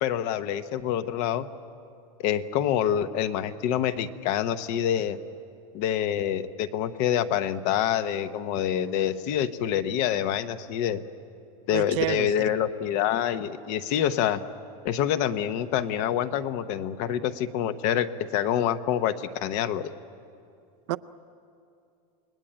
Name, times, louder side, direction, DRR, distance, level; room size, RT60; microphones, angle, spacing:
voice 1, 0.0-1.5 2.2-5.2 5.7-11.0 11.7-14.4 14.8-19.9, left 10 dB, 40° left, 13 dB, 0.8 m, -26 dB
voice 2, 11.7-12.5 20.9-21.0, right 15 dB, 50° right, 14 dB, 0.5 m, -29 dB
29.0 x 20.5 x 8.9 m, 2.5 s
supercardioid pair, 175°, 20 cm